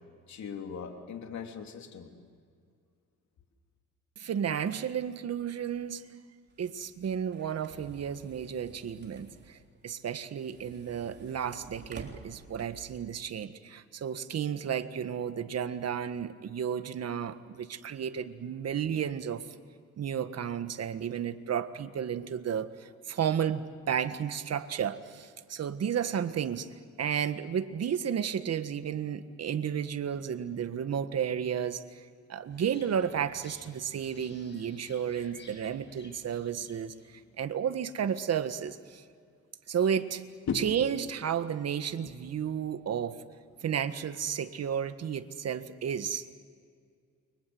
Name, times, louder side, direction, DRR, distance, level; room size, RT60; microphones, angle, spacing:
voice 1, 0.3-2.1 40.5-40.7 42.0-42.1, left 6 dB, 65° left, 4 dB, 3.2 m, -37 dB
voice 2, 4.2-6.1 6.6-19.4 20.0-26.7 27.0-39.0 39.7-40.2 40.5-43.2 43.6-46.2, right 8 dB, 55° right, 10 dB, 1.7 m, -32 dB
sound 1, 6.5-13.0, right 4 dB, 35° right, 3.8 m, -51 dB
sound 2, 32.5-37.5, left 2 dB, 35° left, 7.9 m, -55 dB
30.0 x 24.0 x 7.9 m, 2.2 s
cardioid pair, 90°, 30 cm